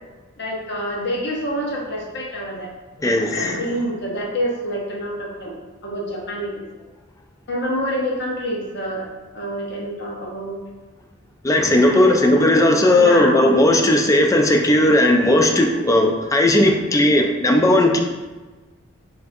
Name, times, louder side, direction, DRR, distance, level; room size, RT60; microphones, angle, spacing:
voice 1, 0.4-2.7 3.3-5.6 5.8-6.8 7.5-9.1 9.3-10.6 11.8-13.8 17.5-17.6, equal, 60° left, -2 dB, 0.9 m, -27 dB
voice 2, 3.0-3.4 11.4-18.0, left 1 dB, 15° left, 2 dB, 0.4 m, -16 dB
5.4 x 2.6 x 2.6 m, 1.2 s
head